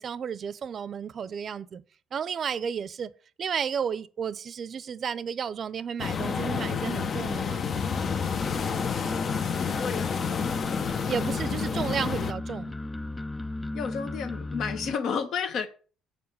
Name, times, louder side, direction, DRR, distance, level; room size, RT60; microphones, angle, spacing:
voice 1, 0.0-1.8 2.1-3.1 3.4-7.6 11.1-12.7, right 7 dB, 50° right, 0.6 m, -32 dB
sound 1, 6.0-12.3, left 6 dB, 50° left, 0.9 m, -30 dB
sound 2, 7.7-14.9, left 2 dB, 15° left, 0.4 m, -35 dB
voice 2, 9.5-10.5 13.7-15.7, left 6 dB, 65° left, 1.3 m, -32 dB
7.1 x 4.7 x 6.9 m
supercardioid pair, 80°, 0 cm